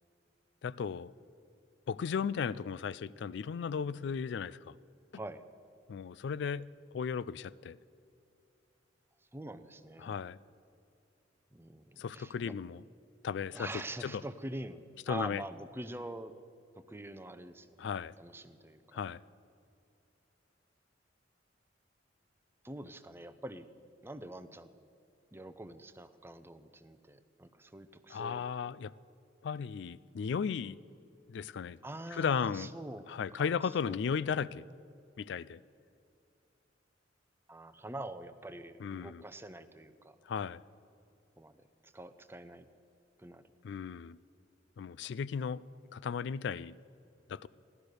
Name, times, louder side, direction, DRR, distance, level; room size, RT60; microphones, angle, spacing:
voice 1, 0.6-1.1 1.9-4.7 5.9-7.8 10.0-10.4 12.0-12.8 13.2-14.2 15.1-15.4 17.8-18.1 18.9-19.2 28.1-28.9 29.4-30.8 31.3-31.8 32.1-32.7 33.1-34.6 35.2-35.6 38.8-39.2 40.3-40.6 43.6-44.2 44.8-45.6 45.9-46.8 47.3-47.5, left 6 dB, 65° left, 19 dB, 0.3 m, -35 dB
voice 2, 9.3-10.1 11.5-12.5 13.5-14.8 15.1-16.3 16.8-17.7 18.2-19.0 22.6-23.7 24.0-24.7 25.3-28.4 31.8-33.1 33.4-33.5 33.9-34.0 37.5-40.2 41.4-41.5 41.8-42.6 43.2-43.4, right 1 dB, 10° right, 12 dB, 0.6 m, -45 dB
16.5 x 12.0 x 6.5 m, 2.6 s
head